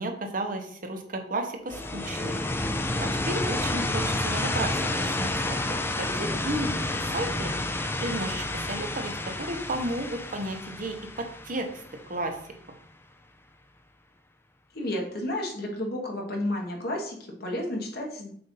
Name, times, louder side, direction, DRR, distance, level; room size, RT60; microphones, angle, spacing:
voice 1, 0.0-2.4 3.0-11.8 12.1-12.4, right 1 dB, 50° right, 4 dB, 0.9 m, -33 dB
sound 1, 1.7-12.4, left 2 dB, 15° left, 0.4 m, -30 dB
voice 2, 14.7-18.3, left 1 dB, 60° left, 0 dB, 1.5 m, -31 dB
6.8 x 2.6 x 5.4 m, 0.63 s
head